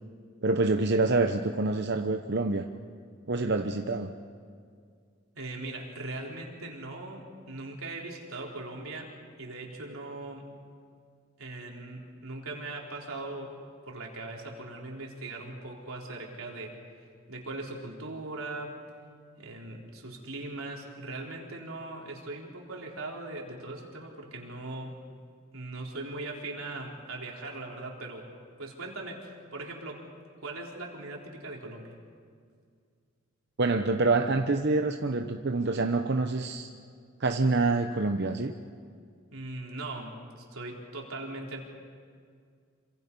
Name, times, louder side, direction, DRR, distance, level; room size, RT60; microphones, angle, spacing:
voice 1, 0.4-2.7 3.3-4.1 33.6-36.7 37.2-38.5, right 3 dB, 55° right, 5 dB, 0.9 m, -26 dB
voice 2, 5.3-10.5 11.4-13.6 13.8-16.8 17.3-18.8 19.4-25.0 25.5-28.3 28.6-30.1 30.4-32.0 39.3-41.6, right 2 dB, 85° right, -1 dB, 4.1 m, -40 dB
27.5 x 25.5 x 5.5 m, 2.1 s
head